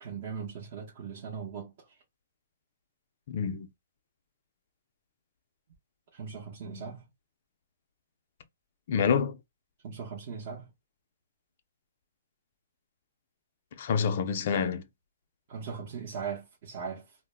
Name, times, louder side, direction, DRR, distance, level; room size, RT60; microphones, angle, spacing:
voice 1, 0.0-2.0 6.1-7.0 9.8-10.7 15.5-17.2, right 6 dB, 40° right, 0.8 m, -39 dB
voice 2, 3.3-3.7 6.6-6.9 8.9-9.4 13.8-14.8, left 6 dB, 50° left, 0.3 m, -28 dB
2.0 x 2.0 x 3.3 m
hypercardioid pair, 160°, 0 cm